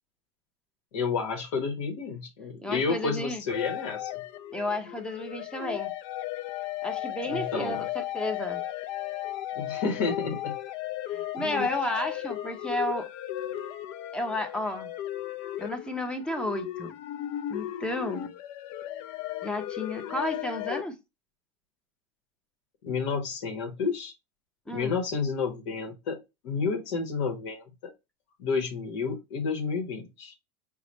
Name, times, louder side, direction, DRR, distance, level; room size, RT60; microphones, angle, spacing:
voice 1, 0.9-4.1 7.3-7.8 9.5-10.5 11.4-11.7 22.8-24.1 24.7-27.9 28.4-30.4, left 5 dB, 75° left, 1.1 m, -30 dB
voice 2, 2.6-3.4 4.5-5.9 6.8-8.6 11.1-13.1 14.1-14.9 15.6-16.9 17.5-18.3 19.4-21.0 24.7-25.0, left 1 dB, 5° left, 0.7 m, -32 dB
sound 1, 3.5-20.8, left 13 dB, 55° left, 0.5 m, -35 dB
4.8 x 2.2 x 4.1 m
supercardioid pair, 135°, 16 cm